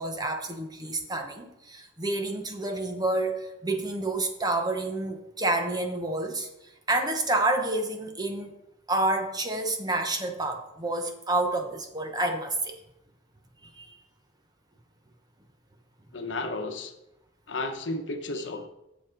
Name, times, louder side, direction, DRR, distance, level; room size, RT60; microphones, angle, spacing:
voice 1, 0.0-6.5 6.9-8.5 8.9-12.8 13.6-14.0, right 2 dB, 20° right, 5 dB, 0.9 m, -29 dB
voice 2, 16.1-16.9 17.5-18.7, left 2 dB, 70° left, 6 dB, 1.0 m, -33 dB
7.4 x 7.1 x 5.0 m, 0.86 s
head